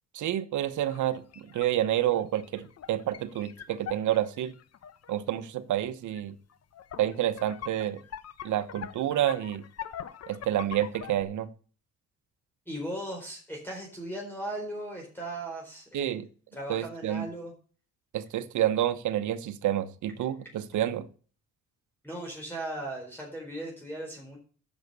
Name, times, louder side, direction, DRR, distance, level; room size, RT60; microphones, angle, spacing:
voice 1, 0.1-4.5 5.1-6.3 7.0-8.0 8.4-9.6 10.3-11.5 15.9-16.3 16.7-17.2 18.1-21.0, right 12 dB, 75° right, 13 dB, 1.1 m, -29 dB
sound 1, 0.8-5.1 6.1-6.2 6.5-11.2, left 9 dB, 55° left, 1.1 m, -43 dB
voice 2, 12.7-16.1 16.5-17.5 22.0-24.4, right 1 dB, 5° left, -1 dB, 4.5 m, -37 dB
10.5 x 7.4 x 6.7 m, 0.40 s
cardioid pair, 90°, 30 cm